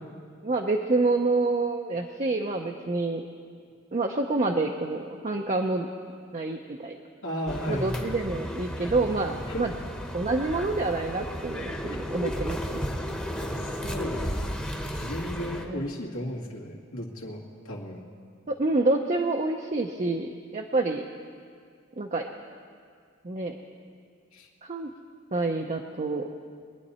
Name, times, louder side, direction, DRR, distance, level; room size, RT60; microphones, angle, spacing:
voice 1, 0.4-3.2 3.9-5.9 6.3-7.0 7.7-9.7 10.1-12.8 15.7-15.8 18.5-21.0 22.0-22.2 23.2-23.6 24.6-24.9 25.3-26.2, right 3 dB, 35° right, 2 dB, 0.6 m, -27 dB
voice 2, 7.2-8.1 9.5-9.7 12.2-12.3 13.4-14.6 15.0-18.0 24.3-24.5, equal, 85° left, -3 dB, 2.1 m, -35 dB
sound 1, 7.5-15.6, equal, 5° left, 1.0 m, -34 dB
23.0 x 9.7 x 4.3 m, 2.1 s
head